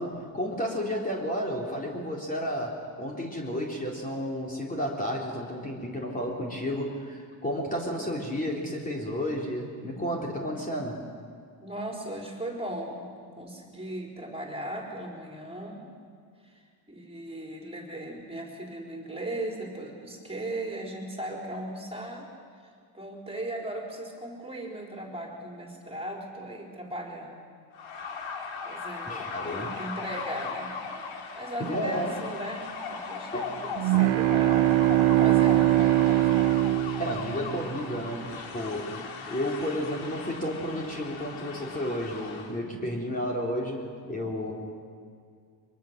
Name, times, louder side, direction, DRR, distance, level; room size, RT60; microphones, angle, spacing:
voice 1, 0.0-11.0 29.1-29.8 31.6-32.2 33.3-33.6 37.0-39.0 39.2-44.5, equal, 15° left, -2 dB, 3.6 m, -32 dB
voice 2, 11.6-15.9 16.4-16.6 16.9-22.3 22.9-27.4 28.6-29.3 29.6-31.0 31.3-34.7 35.2-36.2, right 1 dB, 10° right, -1 dB, 4.3 m, -37 dB
sound 1, 27.7-42.6, left 5 dB, 70° left, 3.1 m, -38 dB
sound 2, 33.8-37.8, right 15 dB, 75° right, 1.0 m, -22 dB
23.5 x 23.0 x 6.7 m, 2.1 s
cardioid pair, 110°, 48 cm